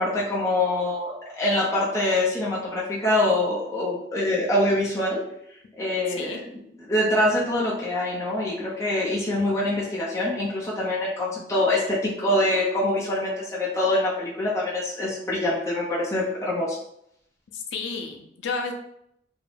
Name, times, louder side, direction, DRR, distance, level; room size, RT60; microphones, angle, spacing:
voice 1, 0.0-5.2 5.8-6.4 6.9-16.8, left 1 dB, 15° left, -6 dB, 0.5 m, -24 dB
voice 2, 6.1-6.4 17.5-18.7, left 4 dB, 85° left, 4 dB, 0.4 m, -32 dB
2.4 x 2.1 x 3.2 m, 0.74 s
head